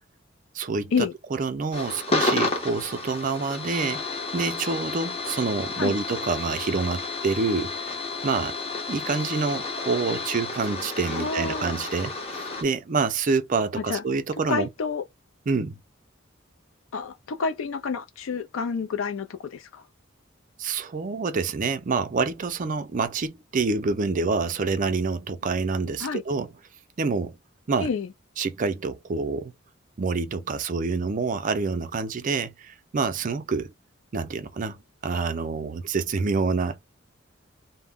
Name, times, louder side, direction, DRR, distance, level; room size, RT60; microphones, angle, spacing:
voice 1, 0.5-4.0 4.3-7.9 8.2-8.6 8.9-14.7 15.5-15.8 20.6-26.5 27.0-27.4 27.7-27.9 28.4-29.5 30.0-33.7 34.1-36.8, right 4 dB, 40° right, 0.4 m, -27 dB
sound 1, 1.7-12.6, left 3 dB, 30° left, 0.7 m, -31 dB
voice 2, 11.1-11.7 13.8-14.0 14.5-15.0 16.9-19.8 26.0-26.2 27.8-28.1, left 5 dB, 85° left, 0.4 m, -29 dB
2.1 x 2.1 x 3.4 m
head